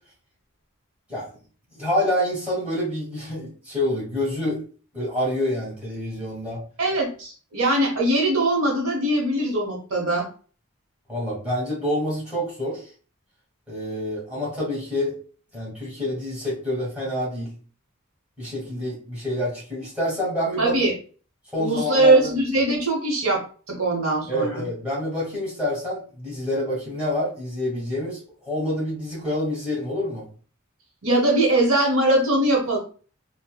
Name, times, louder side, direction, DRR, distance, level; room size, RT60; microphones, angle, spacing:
voice 1, 1.7-4.6 4.9-6.6 11.1-12.8 13.7-15.1 15.5-17.5 18.4-20.7 21.5-22.3 24.3-28.2 28.4-30.2, left 1 dB, 5° right, -7 dB, 1.5 m, -27 dB
voice 2, 6.8-10.2 20.6-20.9 21.6-23.4 23.7-24.6 31.0-32.8, right 2 dB, 70° right, -1 dB, 0.9 m, -21 dB
4.2 x 2.1 x 2.3 m, 0.40 s
head